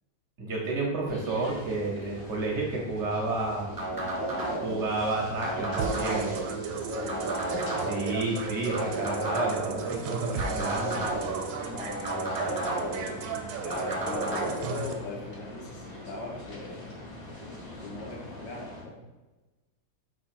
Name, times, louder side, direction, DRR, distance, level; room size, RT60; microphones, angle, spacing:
voice 1, 0.4-3.7 4.6-6.3 7.9-11.1, right 2 dB, 60° right, -1 dB, 0.7 m, -31 dB
sound 1, 1.1-18.8, left 1 dB, 55° left, 0.4 m, -43 dB
sound 2, 3.8-4.8 5.4-6.5 7.1-8.1 8.7-9.8 10.4-11.4 12.0-13.1 13.7-14.5, right 1 dB, 30° right, 0.3 m, -32 dB
sound 3, 5.8-14.9, right 5 dB, 80° right, 1.4 m, -35 dB
voice 2, 6.5-7.9 11.6-16.9 17.8-19.0, left 3 dB, 70° left, -2 dB, 1.4 m, -40 dB
4.8 x 2.6 x 4.3 m, 1.1 s
omnidirectional pair, 2.2 m